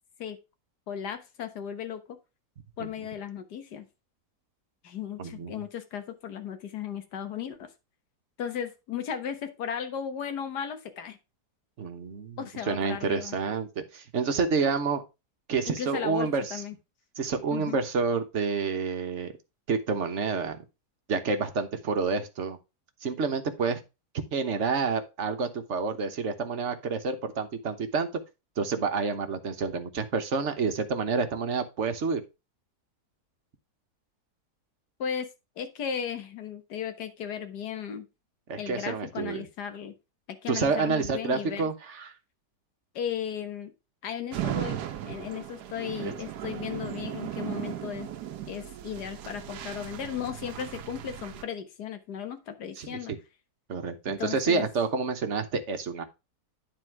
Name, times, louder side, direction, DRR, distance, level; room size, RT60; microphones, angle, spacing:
voice 1, 0.9-2.0 2.8-3.9 4.8-7.7 8.4-11.2 12.4-13.4 15.7-16.7 17.5-17.8 35.0-35.3 35.6-38.1 38.6-39.9 40.4-41.7 43.0-43.7 44.0-48.1 48.5-53.1 54.2-54.7, left 8 dB, 75° left, 8 dB, 1.7 m, -35 dB
voice 2, 5.2-5.5 11.8-12.4 12.7-13.7 13.9-15.0 15.5-16.6 17.2-19.3 19.7-20.6 21.1-22.6 23.0-23.8 24.3-28.1 28.6-32.2 38.5-39.5 40.5-42.1 46.0-46.1 52.8-53.2 53.7-56.0, right 5 dB, 50° right, 8 dB, 1.3 m, -29 dB
sound 1, 44.3-51.4, right 11 dB, 80° right, 1.3 m, -37 dB
9.7 x 4.4 x 4.6 m, 0.26 s
omnidirectional pair, 1.7 m